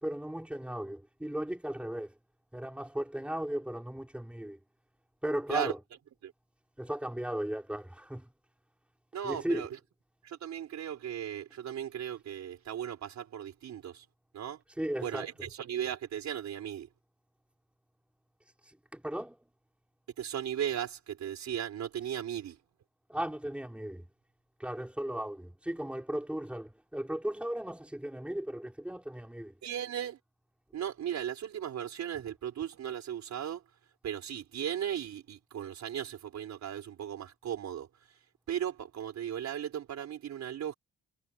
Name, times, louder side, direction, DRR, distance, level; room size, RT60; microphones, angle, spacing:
voice 1, 0.0-2.1 2.5-4.6 5.2-5.8 6.8-8.3 9.2-9.6 14.8-15.3 18.9-19.4 23.1-24.1 24.6-29.5, right 1 dB, 5° right, 4.0 m, -36 dB
voice 2, 9.1-9.7 10.2-14.1 14.3-14.6 15.0-16.9 20.2-22.6 29.6-30.2 30.7-33.6 34.0-37.9 38.5-40.7, right 10 dB, 65° right, 3.8 m, -36 dB
cardioid pair, 90°, 30 cm